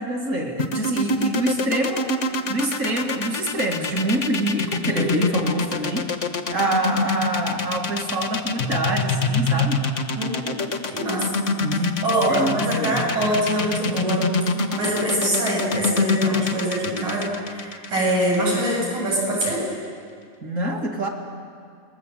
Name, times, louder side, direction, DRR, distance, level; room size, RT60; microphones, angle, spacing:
voice 1, 0.0-2.1 2.5-6.1 6.5-9.8 11.6-12.0 12.3-13.0 20.4-21.1, right 1 dB, 30° right, 2 dB, 2.3 m, -25 dB
sound 1, 0.6-18.7, left 3 dB, 60° left, 0.7 m, -25 dB
voice 2, 4.9-5.4 10.2-10.5 10.9-11.4 12.0-19.6, right 1 dB, 75° right, -3 dB, 9.0 m, -24 dB
29.0 x 20.5 x 7.7 m, 2.2 s
omnidirectional pair, 3.3 m